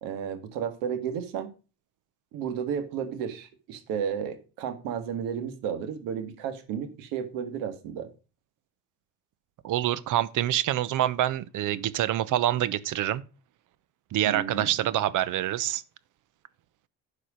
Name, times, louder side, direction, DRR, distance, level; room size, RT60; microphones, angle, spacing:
voice 1, 0.0-1.5 2.3-8.1 14.2-14.7, right 8 dB, 85° right, 1.8 m, -33 dB
voice 2, 9.6-13.2 14.1-15.8, right 12 dB, 65° right, 0.9 m, -26 dB
11.5 x 4.9 x 5.1 m
supercardioid pair, 90°, 33 cm